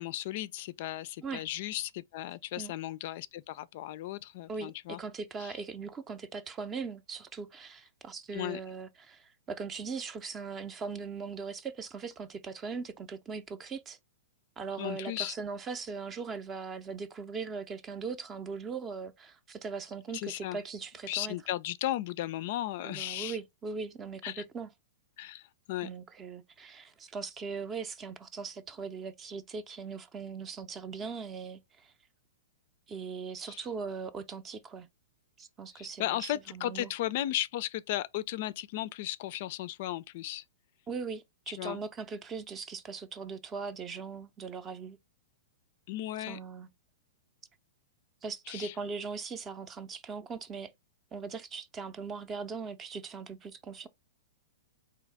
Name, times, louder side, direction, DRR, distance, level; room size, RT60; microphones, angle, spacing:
voice 1, 0.0-5.0 5.4-5.5 8.3-8.6 14.8-15.3 20.1-20.6 21.1-23.4 24.2-24.4 25.2-25.9 33.5-33.6 35.7-40.4 41.6-41.8 45.9-46.4 48.5-48.7, left 14 dB, 55° left, 0.3 m, -35 dB
voice 2, 4.5-14.0 14.6-21.3 22.8-24.7 25.8-31.9 32.9-34.9 35.4-36.9 40.9-45.0 46.3-46.7 48.2-50.7 51.1-53.9, right 5 dB, 20° right, 0.5 m, -40 dB
3.9 x 2.8 x 3.4 m
hypercardioid pair, 120°, 0 cm